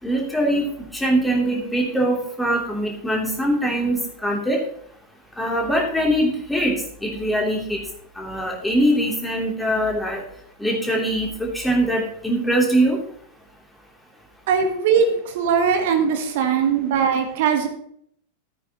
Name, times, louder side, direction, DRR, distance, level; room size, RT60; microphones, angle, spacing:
voice 1, 0.0-0.6 0.9-4.6 5.4-6.8 7.0-7.8 8.2-10.2 10.6-13.0, right 1 dB, 5° left, -1 dB, 3.1 m, -22 dB
voice 2, 14.5-17.7, right 6 dB, 50° right, 6 dB, 1.3 m, -20 dB
14.0 x 8.7 x 3.0 m, 0.66 s
figure-of-eight pair, 90°, 0 cm